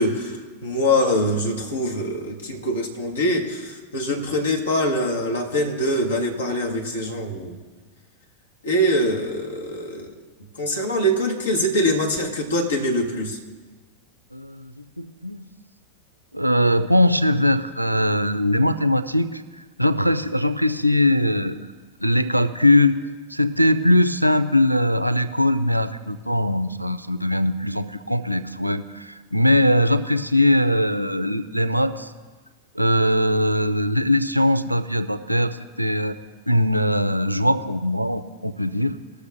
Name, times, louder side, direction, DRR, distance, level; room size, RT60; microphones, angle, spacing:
voice 1, 0.0-7.6 8.6-10.1 10.6-13.4, equal, 70° left, 1 dB, 1.9 m, -23 dB
voice 2, 14.3-15.5 16.3-21.6 22.0-23.0 23.3-32.1 32.7-36.2 36.5-39.0, left 1 dB, 90° right, 12 dB, 0.5 m, -21 dB
20.0 x 6.7 x 3.6 m, 1.4 s
figure-of-eight pair, 90°, 0 cm